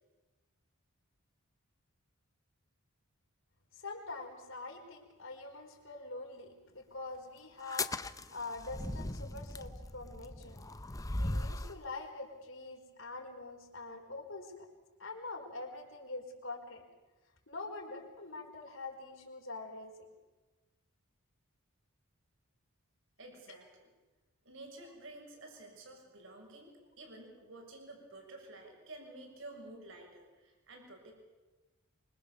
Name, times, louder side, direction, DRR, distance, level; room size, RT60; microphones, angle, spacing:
voice 1, 3.7-7.9 8.3-10.6 11.2-14.7 15.0-16.8 17.5-20.1 23.5-23.6, left 3 dB, 60° left, 2 dB, 4.8 m, -45 dB
sound 1, 7.6-11.8, left 2 dB, 15° left, 0.7 m, -38 dB
voice 2, 23.2-23.9 24.4-31.2, right 2 dB, 55° right, 2 dB, 6.7 m, -51 dB
25.5 x 25.0 x 7.1 m, 1.2 s
head